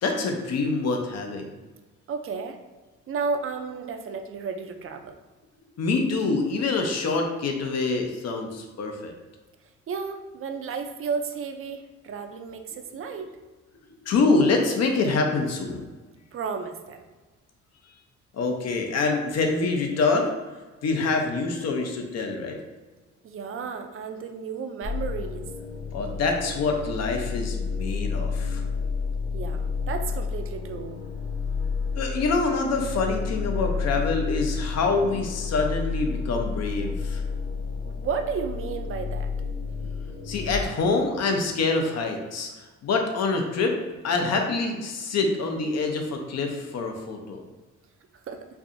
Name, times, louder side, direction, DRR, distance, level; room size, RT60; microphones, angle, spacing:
voice 1, 0.0-1.5 5.8-9.1 14.0-15.9 18.3-20.3 20.8-22.6 25.9-28.6 32.0-37.2 40.2-43.8 44.0-47.4, left 3 dB, 60° left, 3 dB, 0.7 m, -25 dB
voice 2, 2.1-2.6 3.1-5.2 9.9-13.3 16.3-17.0 23.2-25.4 29.3-31.0 37.8-39.3 48.3-48.5, right 5 dB, 45° right, 6 dB, 0.5 m, -33 dB
sound 1, 24.8-40.6, left 5 dB, 45° left, 1.4 m, -30 dB
4.6 x 2.6 x 2.6 m, 1.3 s
cardioid pair, 90°, 30 cm